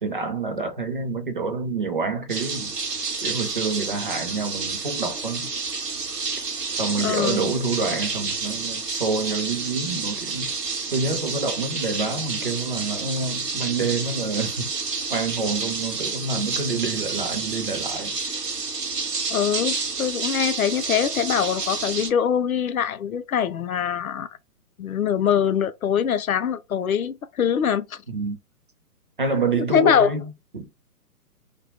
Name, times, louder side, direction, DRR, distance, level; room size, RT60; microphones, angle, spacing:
voice 1, 0.0-2.7 3.2-5.5 6.8-10.5 10.9-14.7 15.1-18.2 28.1-28.4 29.2-30.2 30.5-30.7, right 4 dB, 35° right, 0.5 m, -27 dB
sound 1, 2.3-22.1, right 4 dB, 85° right, 0.7 m, -29 dB
voice 2, 7.0-7.5 19.3-24.3 24.8-28.0 29.7-30.1, left 8 dB, 65° left, 0.5 m, -23 dB
2.7 x 2.2 x 2.6 m
figure-of-eight pair, 125°, 47 cm